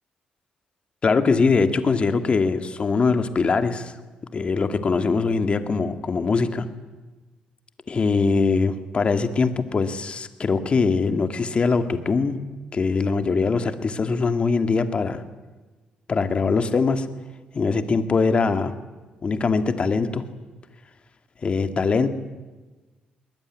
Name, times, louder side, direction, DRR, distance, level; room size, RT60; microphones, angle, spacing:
voice 1, 1.0-4.0 4.3-6.7 7.9-12.4 12.7-15.2 16.1-17.1 17.5-18.7 19.2-20.2 21.4-22.2, left 4 dB, 40° left, 8 dB, 2.0 m, -22 dB
22.0 x 20.0 x 9.5 m, 1.3 s
cardioid pair, 85°, 3 cm